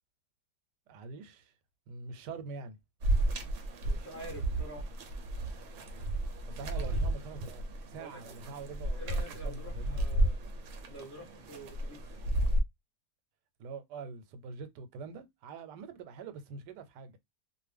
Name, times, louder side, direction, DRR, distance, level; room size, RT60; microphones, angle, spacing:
voice 1, 0.9-1.5 1.9-2.8 6.5-10.0 13.6-17.2, right 4 dB, 85° right, 1.2 m, -44 dB
sound 1, 3.0-12.6, right 1 dB, 60° right, 0.9 m, -33 dB
voice 2, 3.8-4.9 6.6-7.0 8.0-8.5 8.9-10.4 10.9-12.1, equal, 20° left, 0.4 m, -47 dB
2.5 x 2.5 x 3.3 m
omnidirectional pair, 1.8 m